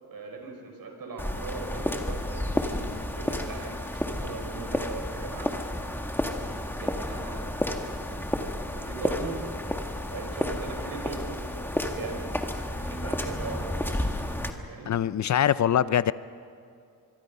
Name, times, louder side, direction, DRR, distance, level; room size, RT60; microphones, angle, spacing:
voice 1, 0.0-2.8 3.1-5.6 6.6-7.5 7.8-9.5 10.1-12.3 12.7-14.2 14.7-15.0, right 4 dB, 60° right, 2 dB, 5.2 m, -40 dB
sound 1, 1.2-14.5, left 1 dB, 5° left, 1.7 m, -31 dB
voice 2, 14.9-16.1, left 9 dB, 45° left, 17 dB, 0.6 m, -23 dB
24.5 x 23.5 x 5.5 m, 2.4 s
cardioid pair, 95°, 40 cm